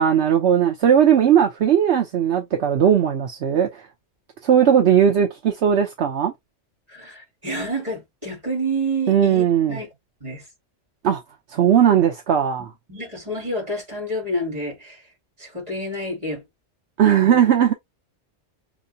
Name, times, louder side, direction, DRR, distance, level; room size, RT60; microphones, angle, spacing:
voice 1, 0.0-3.8 4.4-6.3 9.1-9.8 11.0-11.2 11.5-12.7 17.0-17.7, right 9 dB, 70° right, 1.0 m, -18 dB
voice 2, 6.9-9.9 10.2-10.4 12.9-15.0 15.4-16.4 17.2-17.4, right 1 dB, 35° right, 3.3 m, -29 dB
6.1 x 3.1 x 2.7 m
omnidirectional pair, 1.2 m